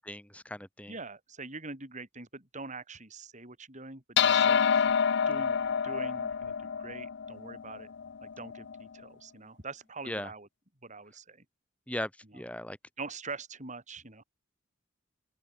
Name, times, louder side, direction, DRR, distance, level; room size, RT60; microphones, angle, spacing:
voice 1, 0.0-0.9 10.1-10.3 11.9-12.8, left 1 dB, 5° left, 5.8 m, -38 dB
voice 2, 0.9-4.9 5.3-7.9 8.2-10.5 10.8-11.4 13.0-14.2, right 3 dB, 35° right, 6.3 m, -44 dB
sound 1, 4.2-8.8, left 7 dB, 55° left, 0.5 m, -28 dB
open air
head